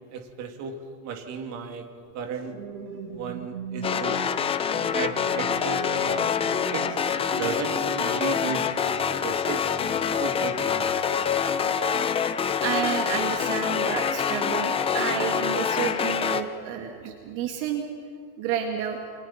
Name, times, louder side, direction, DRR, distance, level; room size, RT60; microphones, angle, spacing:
voice 1, 0.1-0.8 1.0-1.9 2.1-2.5 3.1-4.2 4.9-6.3 6.7-6.8 7.3-8.6 9.2-9.7 10.2-10.9, right 6 dB, 35° right, 4 dB, 2.8 m, -34 dB
sound 1, 2.0-12.6 13.2-13.4, right 7 dB, 85° right, 2.7 m, -42 dB
sound 2, 3.8-16.4, left 7 dB, 15° left, 0.6 m, -26 dB
voice 2, 12.6-17.9 18.4-19.0, right 8 dB, 55° right, 3 dB, 2.2 m, -30 dB
29.0 x 25.5 x 4.4 m, 2.3 s
supercardioid pair, 150°, 44 cm